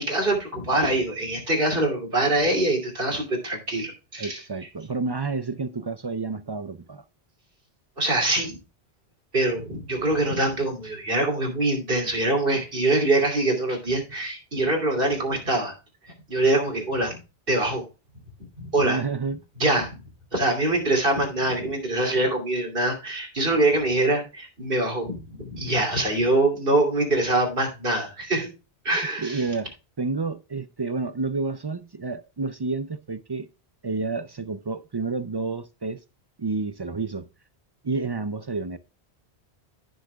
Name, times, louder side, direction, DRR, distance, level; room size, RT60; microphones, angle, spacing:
voice 1, 0.0-4.4 8.0-8.6 9.3-15.8 16.0-17.2 17.5-17.9 18.6-19.0 19.6-20.0 20.3-28.5 28.8-29.4, right 2 dB, 55° right, 3.1 m, -24 dB
voice 2, 4.2-7.0 18.8-19.4 29.2-33.5 33.8-36.0 36.4-37.3 37.8-38.8, right 4 dB, 40° right, 0.3 m, -30 dB
15.0 x 6.4 x 2.3 m
omnidirectional pair, 1.1 m